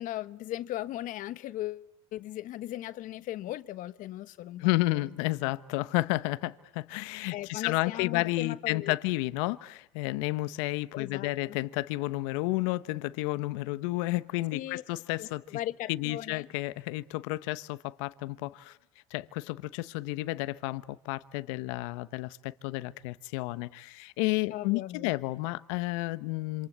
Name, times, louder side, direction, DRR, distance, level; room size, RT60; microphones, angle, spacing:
voice 1, 0.0-5.3 7.3-8.9 10.9-11.6 14.5-14.8 15.2-16.5 24.5-25.1, left 14 dB, 60° left, 1.2 m, -38 dB
voice 2, 4.6-15.4 15.9-18.8 19.1-26.7, left 20 dB, 80° left, 1.1 m, -31 dB
27.5 x 26.5 x 8.1 m
supercardioid pair, 85°, 16 cm